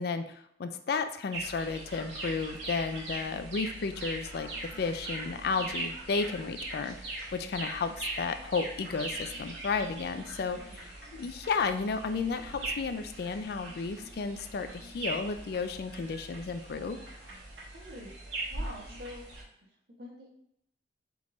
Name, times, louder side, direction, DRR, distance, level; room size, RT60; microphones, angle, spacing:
voice 1, 0.0-4.5 4.8-10.6 11.1-17.0, left 4 dB, 60° left, 9 dB, 0.3 m, -33 dB
sound 1, 1.3-19.4, right 2 dB, 85° right, 1.4 m, -40 dB
voice 2, 10.5-10.9 17.7-18.1 18.5-19.4 19.9-20.3, left 1 dB, 60° right, -3 dB, 1.1 m, -46 dB
3.6 x 3.1 x 3.8 m, 0.73 s
head